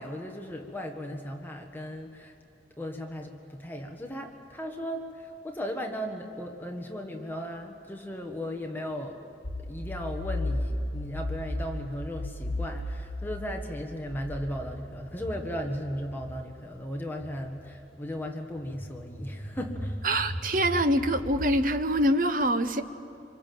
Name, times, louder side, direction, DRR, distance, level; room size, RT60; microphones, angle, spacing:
voice 1, 0.0-2.3 2.8-9.2 9.7-20.0, equal, 10° left, 2 dB, 1.5 m, -36 dB
sound 1, 9.4-16.5 17.2-17.4 18.6-21.6, left 1 dB, 55° left, 1.6 m, -36 dB
voice 2, 20.0-22.8, right 1 dB, 50° right, 9 dB, 1.0 m, -25 dB
25.5 x 25.5 x 7.7 m, 2.7 s
head